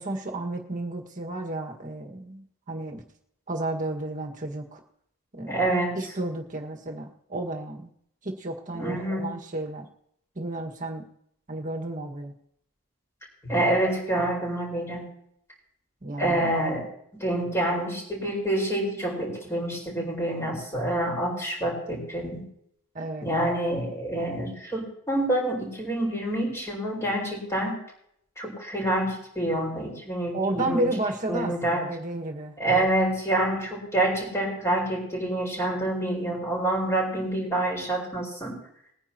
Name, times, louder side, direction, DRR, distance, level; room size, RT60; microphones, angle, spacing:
voice 1, 0.0-3.0 3.5-4.8 5.3-5.6 5.9-7.9 8.2-9.9 10.3-11.1 11.5-12.3 16.0-16.5 22.9-23.3 30.3-32.9, right 2 dB, 40° right, 2 dB, 1.6 m, -32 dB
voice 2, 5.5-6.0 8.7-9.3 13.4-15.1 16.2-16.9 17.1-22.5 23.2-27.8 28.4-30.8 31.3-31.8 32.6-38.6, right 1 dB, 15° left, -2 dB, 4.6 m, -27 dB
21.5 x 9.8 x 2.9 m, 0.71 s
head